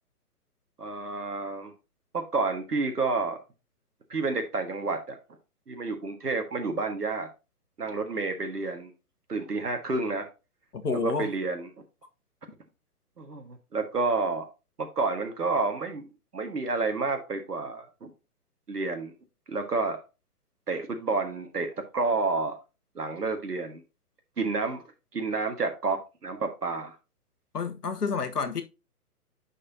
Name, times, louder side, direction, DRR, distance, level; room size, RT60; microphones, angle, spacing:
voice 1, 0.8-1.7 2.1-3.4 4.1-5.2 5.7-7.3 7.8-8.9 9.3-10.3 11.0-11.7 13.2-14.5 14.8-18.1 18.7-19.1 19.5-20.0 20.7-22.6 22.9-23.8 24.4-24.8 25.1-26.9, right 3 dB, 80° right, 1.7 m, -30 dB
voice 2, 10.7-11.3 27.5-28.6, left 4 dB, 80° left, 1.3 m, -29 dB
9.9 x 4.4 x 2.7 m
figure-of-eight pair, 135°, 46 cm